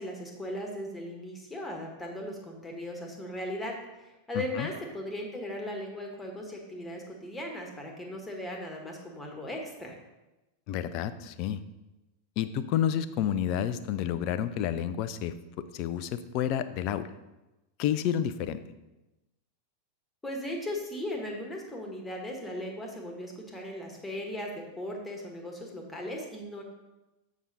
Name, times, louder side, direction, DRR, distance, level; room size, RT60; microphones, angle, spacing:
voice 1, 0.0-3.7 4.3-9.9 20.2-26.6, left 1 dB, 10° left, 1 dB, 1.5 m, -37 dB
voice 2, 10.7-11.6 12.4-15.3 15.7-17.1 17.8-18.6, left 10 dB, 40° left, 13 dB, 0.4 m, -30 dB
7.1 x 6.0 x 4.1 m, 1.0 s
figure-of-eight pair, 90°, 0 cm